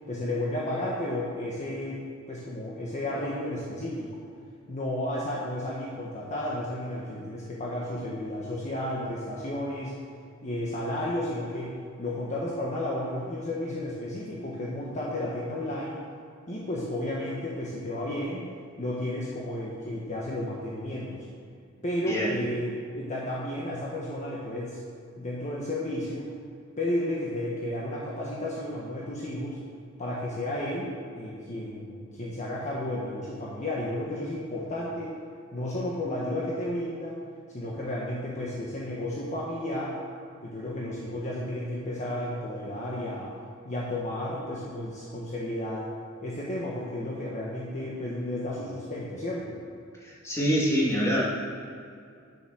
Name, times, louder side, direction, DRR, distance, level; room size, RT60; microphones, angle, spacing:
voice 1, 0.1-4.1 4.7-10.0 10.4-16.0 16.5-18.4 18.8-21.3 21.8-24.8 25.2-26.3 26.8-29.6 30.0-35.1 35.5-37.2 37.5-40.0 40.4-43.3 43.6-45.9 46.2-49.6, left 1 dB, 35° left, -5 dB, 1.3 m, -32 dB
voice 2, 50.0-51.2, equal, 15° left, -6 dB, 2.8 m, -25 dB
10.5 x 7.2 x 6.3 m, 2.4 s
head